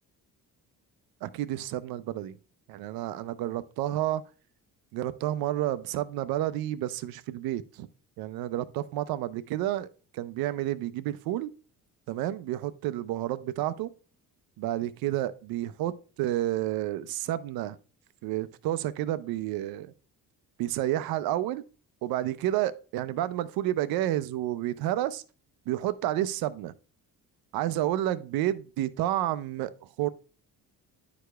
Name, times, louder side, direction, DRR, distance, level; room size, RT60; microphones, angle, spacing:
voice 1, 1.2-2.4 2.7-4.2 4.9-7.9 8.2-9.9 10.1-11.5 12.1-13.9 14.6-17.8 18.2-19.9 20.6-21.6 22.0-25.2 25.7-26.7 27.5-30.1, right 13 dB, 90° right, 0.5 m, -30 dB
10.0 x 4.8 x 2.3 m
cardioid pair, 115°, 35 cm